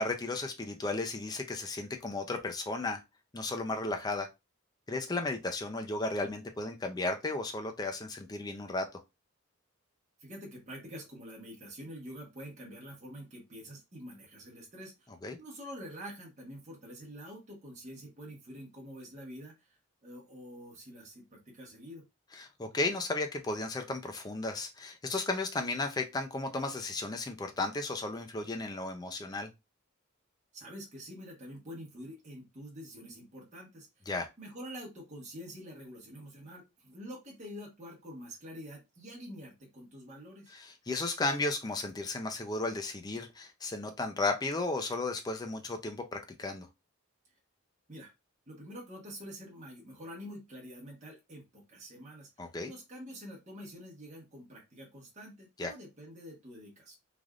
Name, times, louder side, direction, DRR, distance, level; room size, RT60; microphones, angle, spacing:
voice 1, 0.0-3.0 3.3-4.3 4.9-8.9 15.2-15.4 22.4-29.5 34.1-34.3 40.5-46.7 52.4-52.7 55.6-55.7, left 2 dB, 20° left, 0.4 m, -34 dB
voice 2, 10.2-15.1 15.4-22.0 30.5-33.9 34.4-40.6 47.9-48.1 48.5-52.3 52.7-56.9, equal, 35° right, 1.1 m, -47 dB
3.3 x 2.5 x 2.4 m
head